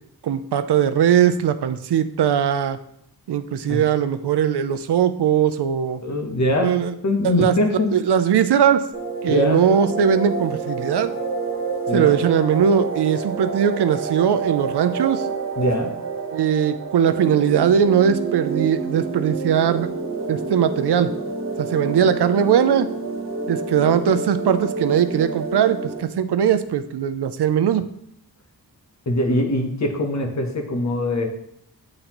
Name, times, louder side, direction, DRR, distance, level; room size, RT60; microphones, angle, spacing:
voice 1, 0.2-2.8 3.3-6.0 6.6-6.9 7.2-7.5 7.9-8.8 9.2-11.1 11.9-15.3 16.3-19.9 20.3-21.1 21.7-22.9 23.5-27.9, right 8 dB, 85° right, 11 dB, 0.5 m, -20 dB
voice 2, 6.0-6.8 7.0-7.9 9.3-9.6 11.9-12.1 15.6-16.0 29.1-31.3, left 1 dB, 45° left, 3 dB, 1.0 m, -22 dB
sound 1, 8.9-26.0, right 4 dB, 35° right, 1.0 m, -28 dB
8.7 x 3.9 x 2.9 m, 0.73 s
wide cardioid pair, 140°, 39 cm